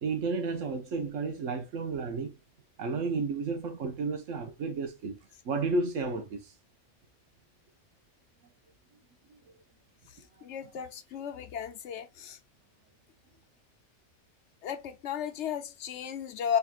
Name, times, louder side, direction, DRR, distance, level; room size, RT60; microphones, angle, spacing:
voice 1, 0.0-2.4 2.8-5.2 5.4-6.5 9.3-9.4, right 4 dB, 85° right, 1.4 m, -32 dB
voice 2, 10.4-12.4 14.6-16.6, left 8 dB, 70° left, 1.0 m, -34 dB
4.3 x 4.2 x 2.4 m
omnidirectional pair, 1.3 m